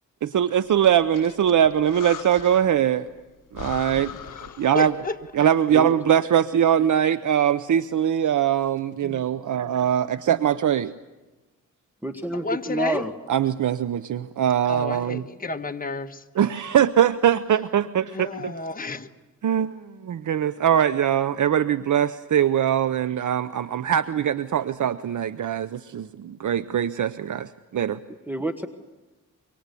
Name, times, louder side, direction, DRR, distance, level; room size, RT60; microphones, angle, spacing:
voice 1, 0.2-3.1 3.5-4.1 4.6-4.9 5.3-10.9 13.3-15.2 16.4-18.5 19.4-28.0, right 9 dB, 65° right, 0.8 m, -22 dB
Breathing, 0.7-2.9 3.2-3.3 3.5-5.2, left 10 dB, 75° left, 0.9 m, -40 dB
voice 2, 4.0-5.2 9.0-9.3 12.3-13.0 14.7-16.2 18.1-19.1, left 3 dB, 25° left, 1.4 m, -32 dB
voice 3, 12.0-13.1 28.3-28.7, right 1 dB, 5° right, 1.4 m, -28 dB
25.0 x 24.0 x 8.4 m
cardioid pair, 80°, 32 cm